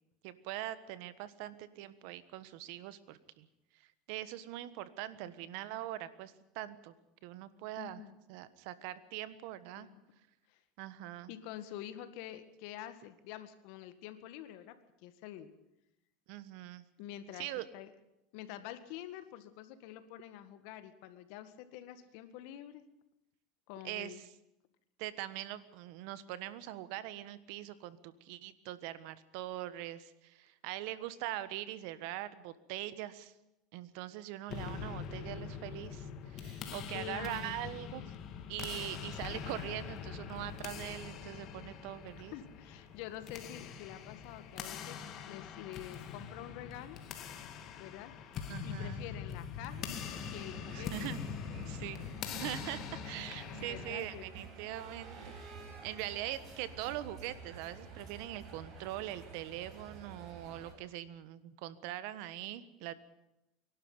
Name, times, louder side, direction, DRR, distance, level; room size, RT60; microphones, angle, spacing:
voice 1, 0.2-3.5 4.1-6.9 7.2-8.0 8.3-9.9 10.8-11.3 16.3-16.8 17.4-17.7 23.8-24.1 25.0-33.3 33.7-38.1 38.5-42.3 48.5-49.0 50.7-51.2 51.7-52.1 52.4-62.9, right 14 dB, 70° right, 15 dB, 1.3 m, -42 dB
voice 2, 7.8-8.2 9.8-10.0 10.5-10.6 11.3-15.5 17.0-17.5 17.7-17.9 18.3-22.8 23.7-24.2 36.9-37.6 42.1-45.0 45.3-47.0 47.8-48.1 48.6-49.9 50.3-50.9 53.6-54.3, left 12 dB, 70° left, 11 dB, 1.8 m, -47 dB
sound 1, 34.5-53.9, left 7 dB, 45° left, 2.2 m, -43 dB
sound 2, 49.7-60.7, right 4 dB, 40° right, 7.0 m, -50 dB
23.0 x 12.0 x 9.7 m, 0.88 s
supercardioid pair, 125°, 0 cm